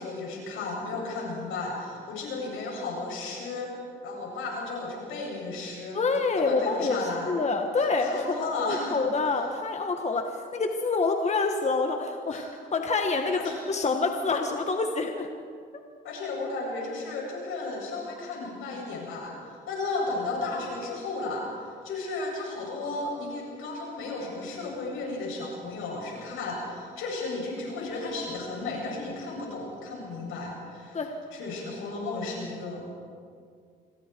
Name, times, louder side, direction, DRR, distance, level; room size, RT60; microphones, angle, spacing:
voice 1, 0.0-3.7 4.0-6.0 6.4-7.4 7.8-9.0 12.3-12.5 13.3-13.5 16.0-19.3 19.7-21.5 21.8-31.0 31.3-32.9, left 3 dB, 85° left, -2 dB, 7.6 m, -34 dB
voice 2, 5.9-7.0 7.3-15.3 30.9-31.1, left 3 dB, 35° left, 4 dB, 1.7 m, -27 dB
26.5 x 23.0 x 4.7 m, 2.2 s
cardioid pair, 90°, 20 cm